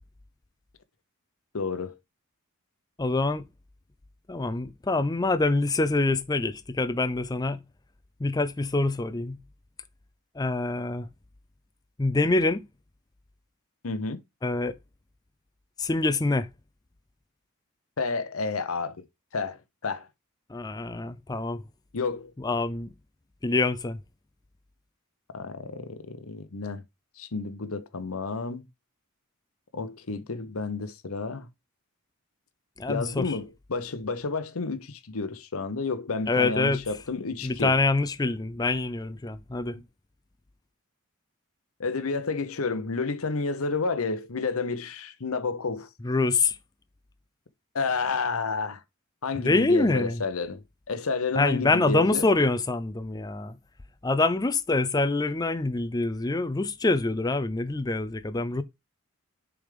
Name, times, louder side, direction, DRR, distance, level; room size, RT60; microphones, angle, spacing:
voice 1, 1.5-2.0 13.8-14.2 18.0-19.0 19.3-20.1 21.9-22.3 25.3-26.8 27.2-28.6 29.7-31.5 32.9-37.8 41.8-45.9 47.7-48.8 49.2-52.3, left 4 dB, 75° left, 0.9 m, -30 dB
voice 2, 3.0-3.5 4.3-7.6 8.2-9.4 10.4-11.1 12.0-12.7 14.4-14.8 15.8-16.5 20.5-21.6 22.4-22.9 23.4-24.0 32.8-33.4 36.3-36.8 37.4-39.8 46.0-46.6 49.4-50.2 51.4-53.6 54.0-58.6, left 3 dB, 15° left, 0.4 m, -25 dB
7.0 x 3.5 x 5.0 m
head